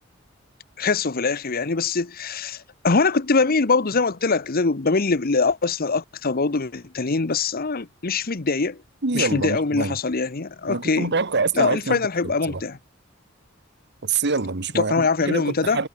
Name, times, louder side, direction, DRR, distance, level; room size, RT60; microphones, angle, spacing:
voice 1, 0.8-8.8 9.1-11.1 11.5-12.8 14.7-15.8, left 4 dB, 50° left, 1.0 m, -23 dB
voice 2, 9.0-9.9 10.7-12.6 14.0-15.9, right 4 dB, 60° right, 1.5 m, -26 dB
head